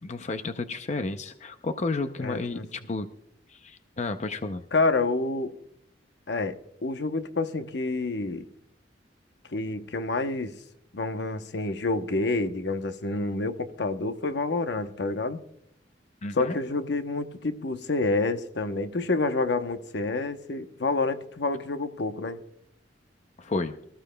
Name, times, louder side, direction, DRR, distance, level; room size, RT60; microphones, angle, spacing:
voice 1, 0.0-3.1 3.5-4.6 16.2-16.6 23.4-23.8, left 3 dB, 40° left, 0.5 m, -32 dB
voice 2, 2.2-2.7 4.7-5.5 6.3-8.5 9.5-10.5 10.9-15.4 16.3-22.4, left 3 dB, 70° left, 0.8 m, -28 dB
24.0 x 14.0 x 2.2 m
head